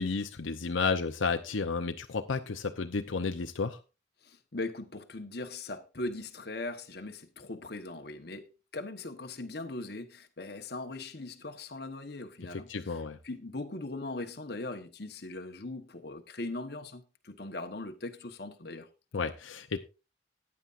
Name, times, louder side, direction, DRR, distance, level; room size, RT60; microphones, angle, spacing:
voice 1, 0.0-3.8 12.5-13.2 19.1-19.8, left 4 dB, 85° left, 0.7 m, -32 dB
voice 2, 4.2-18.9, left 2 dB, 55° left, 1.1 m, -40 dB
15.0 x 9.8 x 2.5 m
head